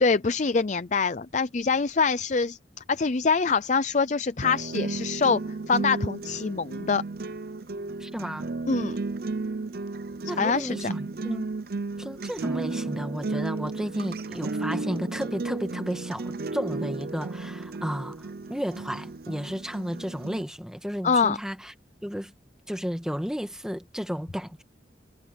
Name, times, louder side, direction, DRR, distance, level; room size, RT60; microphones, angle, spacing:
voice 1, 0.0-2.6 2.9-7.0 8.7-9.0 10.2-10.9 21.0-21.4, left 4 dB, 40° left, 0.5 m, -24 dB
sound 1, 4.4-20.4, right 3 dB, 55° right, 0.7 m, -33 dB
voice 2, 8.0-8.5 10.3-11.5 12.0-21.7 22.0-22.3 22.7-24.6, equal, 5° right, 1.6 m, -33 dB
head